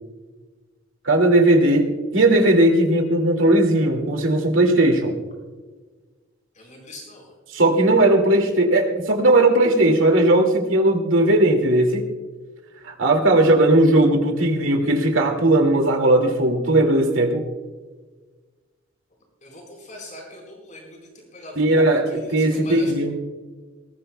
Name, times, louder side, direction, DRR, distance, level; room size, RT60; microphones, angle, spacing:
voice 1, 1.0-1.9 2.1-5.2 7.5-12.1 12.8-17.4 21.6-22.0 22.3-23.1, right 1 dB, 90° right, 3 dB, 2.2 m, -17 dB
voice 2, 6.5-7.3 19.4-22.9, left 1 dB, 40° left, -1 dB, 4.2 m, -41 dB
19.5 x 17.5 x 2.2 m, 1.3 s
head